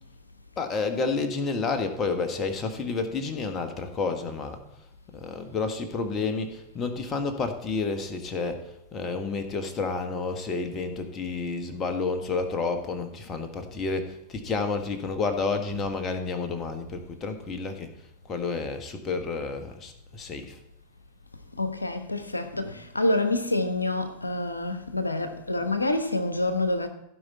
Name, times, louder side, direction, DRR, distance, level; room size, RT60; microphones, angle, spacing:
voice 1, 0.6-4.6 5.1-17.9 18.2-20.6, left 4 dB, 25° left, 1.4 m, -30 dB
voice 2, 21.6-26.9, left 2 dB, 80° left, 1.0 m, -27 dB
16.0 x 5.4 x 4.2 m
figure-of-eight pair, 90°, 0 cm